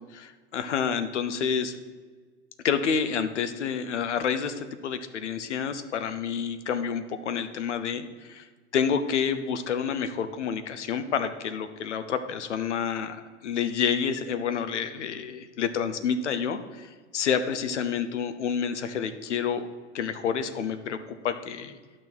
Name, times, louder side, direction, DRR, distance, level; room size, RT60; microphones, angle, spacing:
voice 1, 0.1-1.7 2.6-8.4 8.7-19.7 19.9-21.8, left 7 dB, 75° left, 10 dB, 0.8 m, -29 dB
10.0 x 6.1 x 4.6 m, 1.4 s
hypercardioid pair, 95°, 35 cm